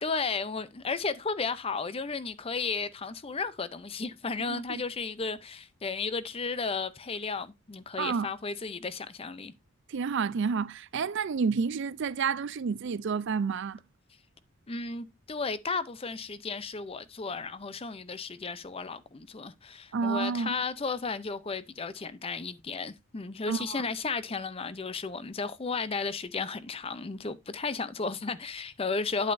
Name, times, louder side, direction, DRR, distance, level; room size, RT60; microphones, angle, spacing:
voice 1, 0.0-9.5 14.7-29.3, left 4 dB, 25° left, 0.5 m, -34 dB
voice 2, 4.5-4.8 8.0-8.3 9.9-13.8 19.9-20.6 23.5-23.8, right 5 dB, 55° right, 0.4 m, -30 dB
8.9 x 8.5 x 2.6 m
head